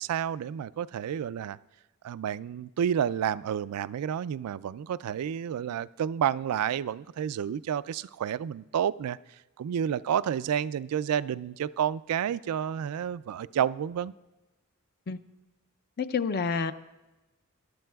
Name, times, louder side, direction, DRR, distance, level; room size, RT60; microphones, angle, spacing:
voice 1, 0.0-1.6 2.0-9.2 9.6-14.1, right 9 dB, 80° right, 17 dB, 0.3 m, -30 dB
voice 2, 16.0-16.7, left 5 dB, 45° left, 12 dB, 0.5 m, -28 dB
19.5 x 12.0 x 2.3 m, 1.1 s
head